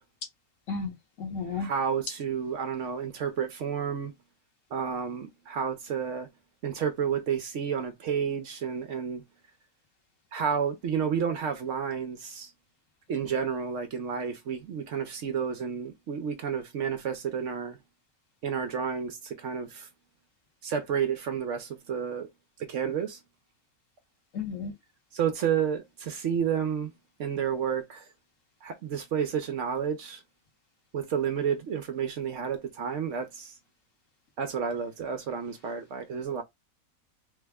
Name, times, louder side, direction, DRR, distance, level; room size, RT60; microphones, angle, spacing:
voice 1, 0.7-1.7 24.3-24.7, left 5 dB, 65° left, 1.3 m, -33 dB
voice 2, 1.5-4.1 4.7-6.3 6.6-9.2 10.3-12.5 13.1-17.8 18.4-19.9 20.6-22.3 22.6-23.2 25.1-26.9 27.2-28.1 28.6-30.2 30.9-33.5 34.4-36.4, right 7 dB, 65° right, 0.9 m, -31 dB
3.4 x 2.0 x 3.4 m
omnidirectional pair, 1.5 m